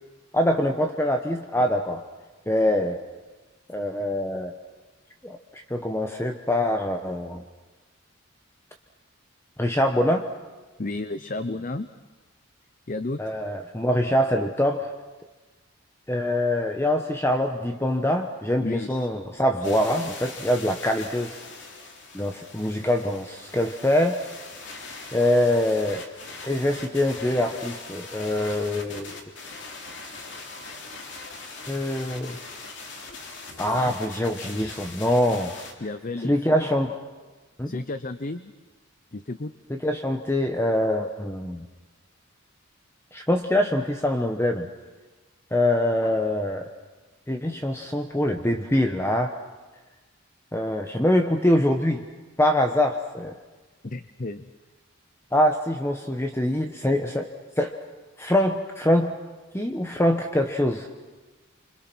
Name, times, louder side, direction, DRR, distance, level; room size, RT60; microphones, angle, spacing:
voice 1, 0.3-2.0 2.5-3.0 3.7-4.5 5.2-7.4 9.6-10.2 13.2-14.9 16.1-21.4 22.1-24.2 25.1-26.0 26.4-29.1 31.7-32.4 33.6-35.5 36.2-36.9 37.6-37.8 39.7-41.7 43.1-44.7 45.5-46.7 47.3-49.3 50.5-52.0 52.4-53.3 55.3-57.3 57.6-57.7 58.2-59.1 59.5-60.9, left 1 dB, 10° left, 4 dB, 1.0 m, -24 dB
voice 2, 10.8-11.9 12.9-13.2 18.6-19.1 33.9-34.0 35.8-36.3 37.7-38.5 39.1-39.5 53.8-54.5, left 2 dB, 40° left, 11 dB, 0.7 m, -32 dB
sound 1, 19.6-35.7, left 3 dB, 60° left, 3.1 m, -41 dB
29.0 x 26.0 x 6.2 m, 1.2 s
head